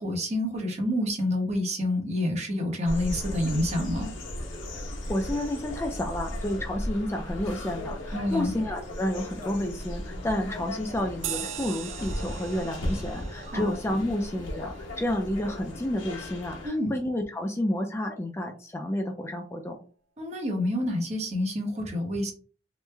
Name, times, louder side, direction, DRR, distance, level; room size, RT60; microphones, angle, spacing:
voice 1, 0.0-4.1 8.1-8.5 13.4-13.7 16.6-16.9 20.2-22.3, left 1 dB, 35° right, 2 dB, 0.9 m, -28 dB
sound 1, 2.9-16.7, left 1 dB, 90° left, 1.0 m, -36 dB
voice 2, 5.1-19.8, left 1 dB, 15° left, 3 dB, 0.3 m, -30 dB
sound 2, 11.2-16.1, right 10 dB, 85° right, 0.4 m, -41 dB
3.0 x 2.1 x 3.3 m, 0.40 s
head